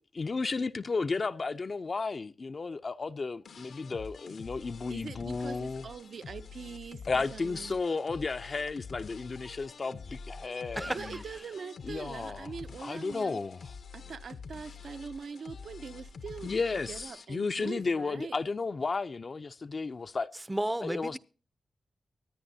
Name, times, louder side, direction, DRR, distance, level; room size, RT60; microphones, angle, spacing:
voice 1, 0.0-5.9 7.1-11.2 11.8-12.5 12.8-13.8 16.4-20.3 20.8-21.2, left 4 dB, 40° left, 0.5 m, -33 dB
sound 1, 3.4-17.2, left 5 dB, 70° left, 0.8 m, -47 dB
voice 2, 4.9-7.8 10.9-13.4 13.9-18.4, right 5 dB, 65° right, 0.6 m, -43 dB
voice 3, 10.8-11.2 20.5-21.2, right 1 dB, 10° right, 0.5 m, -33 dB
24.0 x 9.5 x 2.7 m
wide cardioid pair, 100°, 0 cm